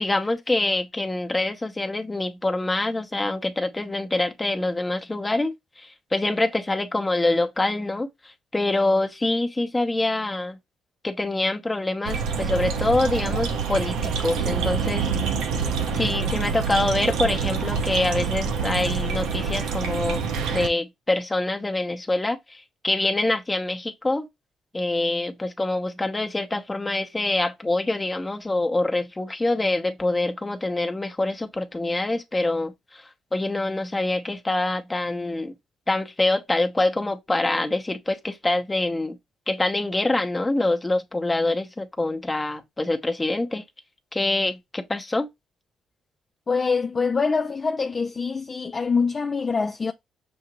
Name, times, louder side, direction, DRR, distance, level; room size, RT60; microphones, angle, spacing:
voice 1, 0.0-8.1 8.5-10.6 11.0-15.1 15.9-20.2 20.5-24.3 24.7-33.0 33.3-35.5 35.9-39.2 39.5-43.6 44.1-45.3, left 2 dB, 20° left, 0.9 m, -25 dB
sound 1, 12.0-20.7, right 6 dB, 85° right, 0.7 m, -26 dB
voice 2, 46.5-49.9, left 4 dB, 35° left, 0.4 m, -24 dB
6.4 x 2.7 x 2.9 m
cardioid pair, 90°, 0 cm